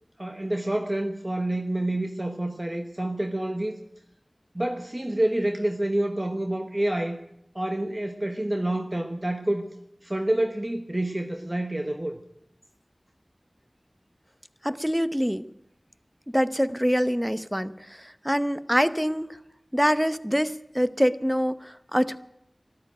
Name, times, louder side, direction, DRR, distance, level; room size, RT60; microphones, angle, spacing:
voice 1, 0.2-3.7 4.5-7.2 7.5-9.7 10.0-12.2, right 1 dB, 35° right, 5 dB, 1.0 m, -28 dB
voice 2, 14.6-15.5 16.3-19.4 19.7-22.2, equal, ahead, 13 dB, 0.8 m, -25 dB
13.0 x 11.5 x 9.1 m, 0.80 s
wide cardioid pair, 45°, 0 cm